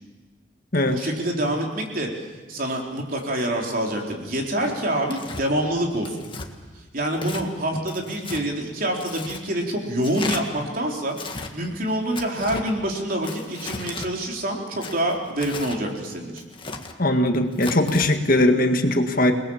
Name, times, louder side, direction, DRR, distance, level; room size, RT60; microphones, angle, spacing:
voice 1, 0.9-2.1 2.5-6.3 6.9-16.5, right 1 dB, 50° right, 1 dB, 4.0 m, -26 dB
Tearing, 5.1-5.4 6.0-6.5 7.1-7.5 7.9-8.4 9.0-9.4 10.0-10.4 11.1-11.5 12.1-12.7 13.2-14.1 14.8-15.8 16.4-16.9 17.5-18.1, left 4 dB, 25° left, 1.8 m, -35 dB
voice 2, 17.0-19.3, left 1 dB, 50° left, 5 dB, 1.9 m, -20 dB
29.0 x 20.0 x 7.2 m, 1.4 s
head